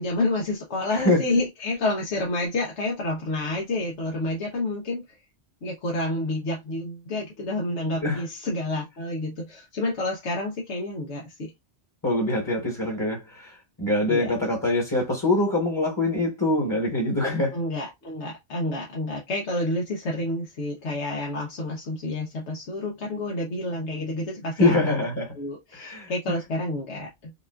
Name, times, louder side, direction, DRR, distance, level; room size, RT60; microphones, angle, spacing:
voice 1, 0.0-5.0 5.6-11.5 14.1-14.3 17.5-24.9 25.3-27.3, left 2 dB, 80° left, 1.2 m, -29 dB
voice 2, 0.9-1.2 8.0-8.2 12.0-17.6 24.6-25.3 25.8-26.1, left 2 dB, 20° left, 1.1 m, -24 dB
5.2 x 2.5 x 2.3 m
omnidirectional pair, 1.2 m